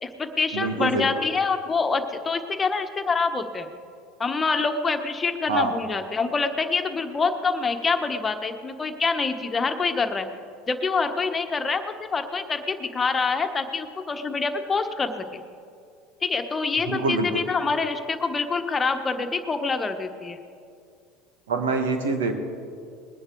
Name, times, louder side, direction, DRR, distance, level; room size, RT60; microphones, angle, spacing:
voice 1, 0.0-3.7 4.2-10.3 10.7-11.8 12.1-15.1 16.2-20.4, left 4 dB, 25° left, 7 dB, 1.3 m, -26 dB
voice 2, 0.5-1.1 5.5-5.7 16.8-17.4 21.5-22.3, right 3 dB, 85° right, 5 dB, 1.6 m, -25 dB
20.5 x 10.0 x 4.7 m, 2.3 s
hypercardioid pair, 85°, 0 cm